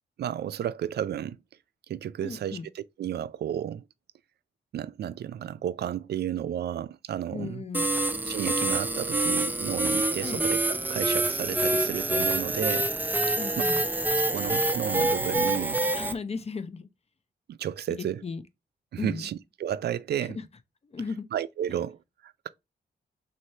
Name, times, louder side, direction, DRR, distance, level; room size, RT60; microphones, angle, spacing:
voice 1, 0.2-1.4 1.9-3.8 4.7-7.6 8.2-10.6 10.9-12.9 14.2-15.8 17.5-18.2 18.9-20.4 21.3-22.5, right 10 dB, 70° right, 0.4 m, -32 dB
voice 2, 2.2-2.7 7.3-7.9 10.2-10.5 13.4-13.8 15.9-16.9 17.9-18.4 19.0-19.2 20.2-20.4 20.8-21.3, left 4 dB, 35° left, 0.6 m, -36 dB
sound 1, 7.7-16.1, right 2 dB, 10° right, 0.5 m, -26 dB
4.0 x 3.2 x 2.7 m
cardioid pair, 75°, 17 cm